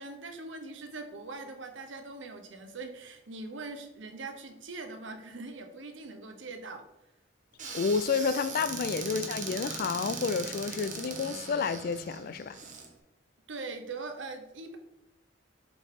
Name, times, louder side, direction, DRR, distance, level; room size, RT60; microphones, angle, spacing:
voice 1, 0.0-6.8 13.5-14.8, right 3 dB, 90° right, 1.1 m, -42 dB
Squeak / Cupboard open or close, 7.6-12.9, right 4 dB, 45° right, 1.3 m, -39 dB
voice 2, 7.7-12.6, left 5 dB, 50° left, 0.4 m, -30 dB
7.6 x 3.9 x 4.9 m
head